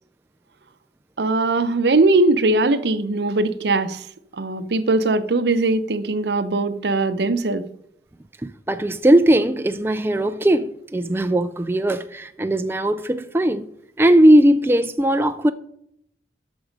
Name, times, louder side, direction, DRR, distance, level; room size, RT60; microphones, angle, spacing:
voice 1, 1.2-4.1 4.4-7.7, right 2 dB, 75° right, 0.7 m, -20 dB
voice 2, 8.4-13.7 14.0-15.5, right 1 dB, 15° right, 0.3 m, -18 dB
12.0 x 6.2 x 5.1 m
head